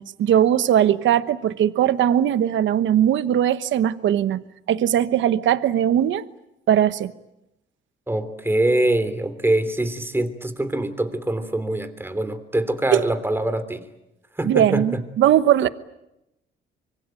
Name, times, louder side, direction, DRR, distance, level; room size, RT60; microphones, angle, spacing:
voice 1, 0.0-6.2 6.7-7.1 12.9-13.1 14.4-15.7, right 10 dB, 75° right, 1.1 m, -19 dB
voice 2, 8.1-13.8 14.4-14.8, right 1 dB, 10° right, 3.1 m, -24 dB
25.0 x 23.0 x 9.2 m
cardioid pair, 90°, 20 cm